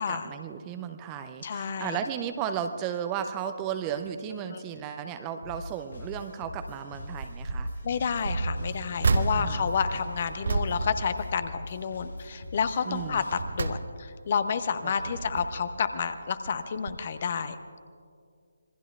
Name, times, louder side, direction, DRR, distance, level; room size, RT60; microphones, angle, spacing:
voice 1, 0.0-7.7 9.4-9.7 12.9-13.2 14.8-14.9, right 8 dB, 15° right, 8 dB, 0.6 m, -34 dB
voice 2, 1.4-2.0 4.5-4.6 7.8-17.6, left 6 dB, 35° left, 11 dB, 0.8 m, -30 dB
sound 1, 5.4-13.4, left 2 dB, 55° left, 1.2 m, -43 dB
sound 2, 7.2-7.8 8.2-11.9 12.2-12.6 13.1-14.3 14.8-15.8 16.5-16.6 16.9-17.0, right 3 dB, 50° right, 0.7 m, -31 dB
26.5 x 22.0 x 2.4 m, 2.2 s
figure-of-eight pair, 150°, 0 cm